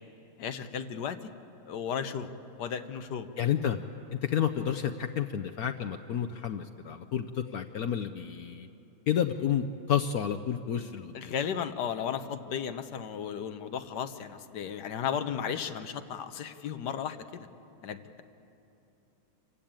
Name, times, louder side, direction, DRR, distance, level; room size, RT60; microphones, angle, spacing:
voice 1, 0.4-1.3 1.7-2.3 2.6-3.3 11.1-17.5 17.8-18.2, left 8 dB, 60° left, 9 dB, 1.3 m, -35 dB
voice 2, 3.4-3.8 4.1-8.7 9.1-11.3, left 9 dB, 80° left, 6 dB, 0.8 m, -30 dB
26.5 x 15.5 x 8.9 m, 2.8 s
omnidirectional pair, 2.3 m